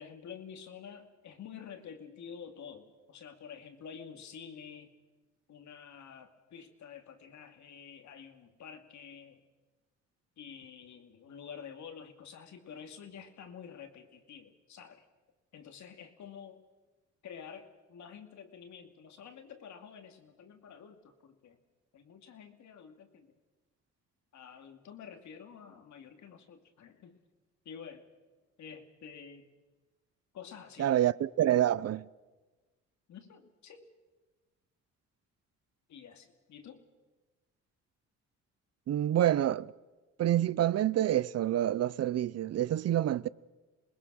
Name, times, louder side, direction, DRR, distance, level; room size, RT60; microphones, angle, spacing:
voice 1, 0.0-4.9 5.5-9.4 10.4-15.1 15.5-16.6 17.2-21.6 21.9-23.3 24.3-27.2 27.6-28.1 28.6-29.5 30.3-31.2 33.1-33.9 35.9-36.9, left 7 dB, 70° left, 2.4 m, -49 dB
voice 2, 30.8-32.1 38.9-39.7 40.2-43.3, right 12 dB, 55° right, 0.6 m, -27 dB
27.0 x 20.5 x 6.3 m
cardioid pair, 90°, 30 cm